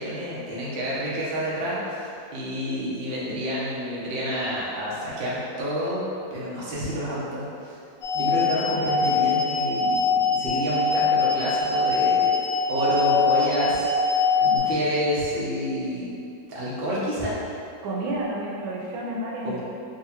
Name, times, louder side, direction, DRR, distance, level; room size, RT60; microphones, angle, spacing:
voice 1, 0.0-6.0 6.3-7.8 8.1-12.4 12.7-13.9 14.4-16.1 16.5-17.4 19.4-19.6, equal, 65° right, -7 dB, 0.5 m, -28 dB
sound 1, 8.0-14.6, left 4 dB, 80° left, 1.4 m, -23 dB
voice 2, 17.8-19.6, right 1 dB, 85° right, -3 dB, 1.4 m, -30 dB
3.7 x 3.0 x 2.8 m, 2.6 s
omnidirectional pair, 2.2 m